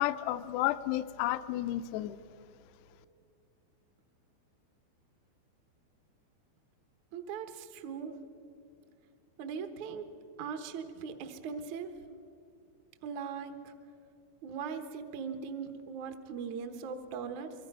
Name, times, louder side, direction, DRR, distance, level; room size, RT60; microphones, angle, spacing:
voice 1, 0.0-2.2, left 14 dB, 80° left, 12 dB, 2.5 m, -31 dB
voice 2, 7.1-8.1 9.4-10.1 10.4-11.9 13.0-13.7 14.4-17.5, right 6 dB, 65° right, 7 dB, 1.9 m, -40 dB
25.5 x 24.0 x 5.6 m, 2.6 s
omnidirectional pair, 5.2 m